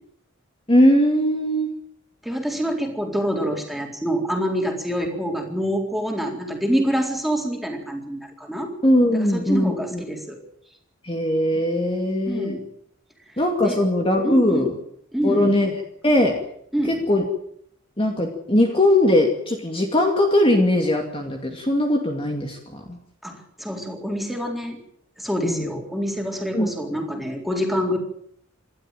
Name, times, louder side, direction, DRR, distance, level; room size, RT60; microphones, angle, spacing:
voice 1, 0.7-1.7 8.8-10.0 11.0-12.6 13.4-14.7 15.2-16.4 16.9-17.3 18.0-23.0 25.4-25.7 26.5-26.7, left 1 dB, 25° left, 2 dB, 2.4 m, -20 dB
voice 2, 2.2-8.7 9.2-10.4 12.3-12.6 13.6-13.8 14.2-14.7 15.1-15.6 16.7-16.9 23.2-24.8 25.2-28.0, equal, ahead, 2 dB, 4.0 m, -26 dB
28.0 x 12.5 x 9.1 m, 0.69 s
head